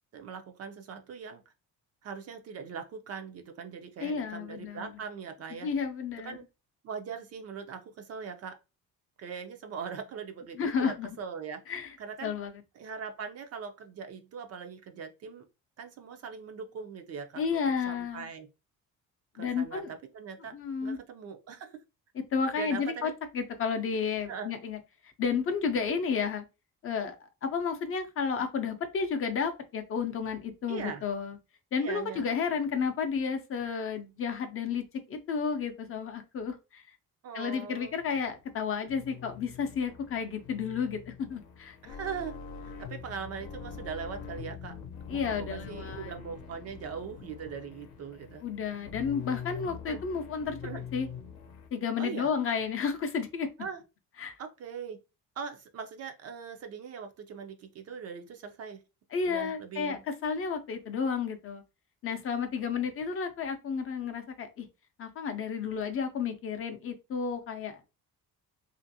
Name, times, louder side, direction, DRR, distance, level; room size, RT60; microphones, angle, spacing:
voice 1, 0.1-1.5 2.0-5.7 6.2-6.4 6.8-8.6 9.2-11.6 12.0-12.3 12.8-15.4 15.8-18.5 19.3-20.6 20.8-21.8 22.6-23.1 24.3-24.5 30.7-31.0 31.8-32.2 37.2-38.0 41.8-44.7 45.1-48.4 49.9-50.0 50.6-50.8 52.0-52.3 53.6-53.8 54.4-55.0 55.4-58.8 59.2-60.0, right 6 dB, 45° right, 0.4 m, -41 dB
voice 2, 4.0-4.9 5.5-6.4 10.5-11.1 11.7-11.9 12.2-12.5 17.4-18.3 19.4-19.9 20.5-21.0 22.1-24.8 25.2-26.5 26.8-27.2 27.4-31.4 31.7-34.8 35.1-36.8 37.3-41.8 45.1-46.1 48.4-50.6 50.9-51.1 51.7-53.5 54.2-54.4 59.1-61.6 62.0-64.7 65.0-67.8, left 6 dB, 40° left, 0.5 m, -32 dB
sound 1, 37.8-51.7, left 7 dB, 80° left, 0.7 m, -44 dB
2.9 x 2.5 x 2.7 m
cardioid pair, 145°, 35 cm